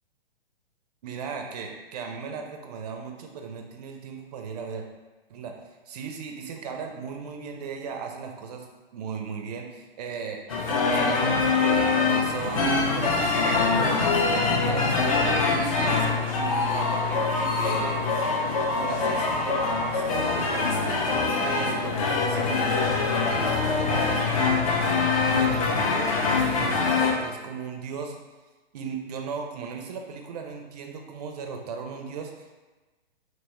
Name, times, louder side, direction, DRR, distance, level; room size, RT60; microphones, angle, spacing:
voice 1, 1.0-4.9 5.3-5.5 5.9-8.7 8.9-10.4 10.7-15.4 15.8-18.0 18.8-21.0 21.4-24.5 25.4-28.2 28.7-32.5, right 6 dB, 45° right, 3 dB, 0.4 m, -36 dB
sound 1, 10.5-27.1, left 4 dB, 35° left, 0.4 m, -24 dB
2.9 x 2.2 x 2.9 m, 1.2 s
figure-of-eight pair, 120°, 30 cm